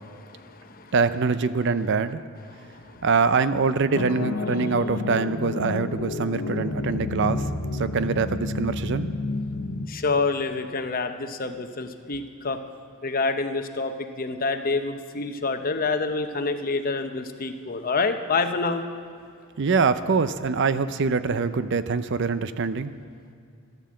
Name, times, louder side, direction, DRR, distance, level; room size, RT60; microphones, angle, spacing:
voice 1, 0.2-0.9 2.5-3.0 9.9-12.6 13.0-18.8, left 3 dB, 45° left, 7 dB, 0.9 m, -27 dB
voice 2, 0.9-2.2 3.0-9.1 19.6-22.9, right 4 dB, 60° right, 12 dB, 0.5 m, -24 dB
sound 1, 3.9-9.9, left 2 dB, 85° left, 1.0 m, -30 dB
14.0 x 10.5 x 7.6 m, 2.3 s
head